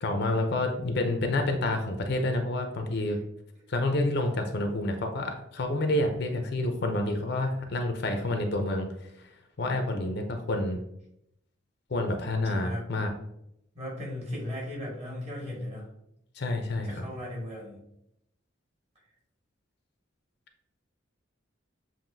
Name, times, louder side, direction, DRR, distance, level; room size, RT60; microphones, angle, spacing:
voice 1, 0.0-3.2 3.7-8.9 9.6-10.8 11.9-13.1 16.4-16.9, left 2 dB, 55° left, 5 dB, 0.6 m, -28 dB
voice 2, 12.4-12.9 13.7-15.9 16.8-17.8, left 1 dB, 35° right, -4 dB, 1.7 m, -37 dB
7.3 x 2.7 x 2.6 m, 0.79 s
head